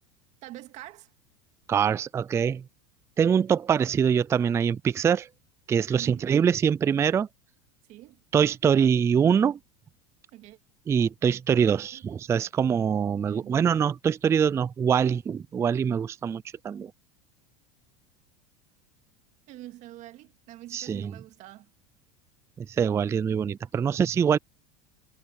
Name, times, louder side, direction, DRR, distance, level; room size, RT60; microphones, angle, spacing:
voice 1, 0.4-1.1 6.0-6.2 7.9-8.2 10.3-10.6 11.9-12.1 13.3-13.7 19.5-21.7, right 15 dB, 50° right, 2.2 m, -45 dB
voice 2, 1.7-2.6 3.2-5.3 5.7-7.3 8.3-9.6 10.9-16.9 20.7-21.1 22.6-24.4, right 7 dB, 20° right, 0.4 m, -24 dB
supercardioid pair, 115°, 15 cm